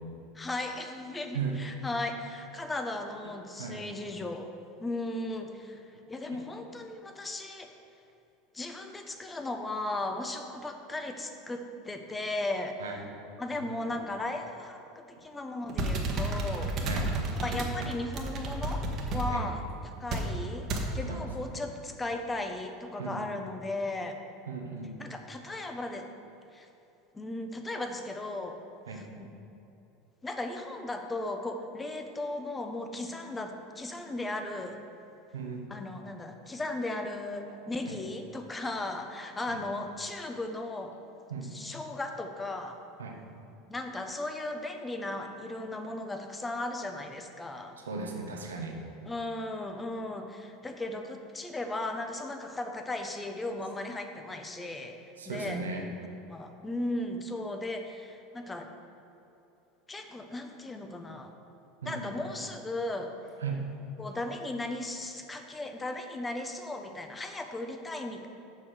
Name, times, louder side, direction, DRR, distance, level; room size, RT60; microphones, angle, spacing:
voice 1, 0.3-4.5 4.8-7.7 8.5-13.0 13.4-16.7 17.4-18.8 19.1-20.7 20.9-24.2 25.0-26.1 26.5-26.7 27.1-28.6 28.9-29.3 30.2-34.8 35.7-40.9 41.4-42.8 43.7-47.8 49.0-55.0 55.2-55.6 56.3-58.7 59.9-61.3 61.8-63.1 64.0-68.3, left 2 dB, 15° left, 5 dB, 1.0 m, -36 dB
sound 1, 15.7-19.3 20.1-20.3 20.7-20.9, right 2 dB, 45° right, 1.4 m, -31 dB
voice 2, 24.5-25.0 28.9-29.0 35.3-35.7 37.9-38.0 39.5-39.6 41.3-41.5 43.0-43.2 47.9-48.8 55.2-55.9 61.8-62.1 63.4-63.6, right 5 dB, 85° right, 2 dB, 1.1 m, -36 dB
7.4 x 5.6 x 6.3 m, 2.8 s
hypercardioid pair, 80°, 0 cm